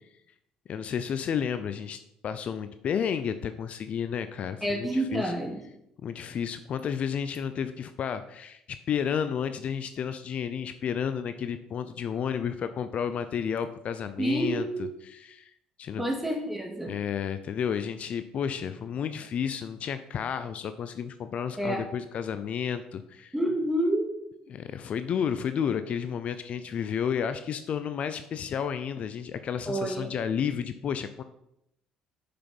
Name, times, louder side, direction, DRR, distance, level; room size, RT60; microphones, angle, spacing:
voice 1, 0.7-5.3 6.0-16.0 16.9-23.3 24.5-31.2, left 7 dB, 55° left, 11 dB, 0.5 m, -32 dB
voice 2, 4.6-5.6 14.2-14.8 16.0-16.9 21.6-21.9 23.3-24.1 29.7-30.1, right 1 dB, 5° right, 2 dB, 2.1 m, -28 dB
6.6 x 6.0 x 5.3 m, 0.80 s
supercardioid pair, 70°, 3 cm